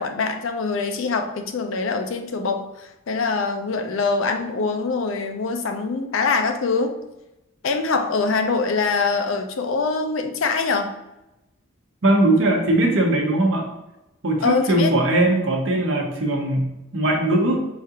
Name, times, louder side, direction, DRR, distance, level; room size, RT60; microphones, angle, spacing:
voice 1, 0.0-7.0 7.6-11.0 14.4-15.0, left 4 dB, 75° left, 6 dB, 0.5 m, -24 dB
voice 2, 12.0-13.7 14.2-17.7, right 1 dB, 65° right, 1 dB, 0.8 m, -20 dB
4.9 x 2.4 x 2.8 m, 0.95 s
head